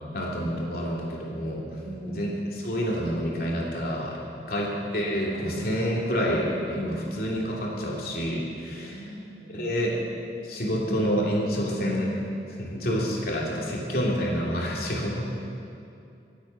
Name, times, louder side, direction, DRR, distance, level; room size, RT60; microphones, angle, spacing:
voice 1, 0.1-1.8 2.1-4.2 4.5-9.0 9.5-10.0 10.4-12.2 12.6-15.2, equal, 60° left, -3 dB, 2.9 m, -28 dB
voice 2, 1.8-2.2 8.7-9.7, right 1 dB, 55° right, -2 dB, 3.5 m, -41 dB
24.0 x 8.6 x 5.8 m, 2.6 s
head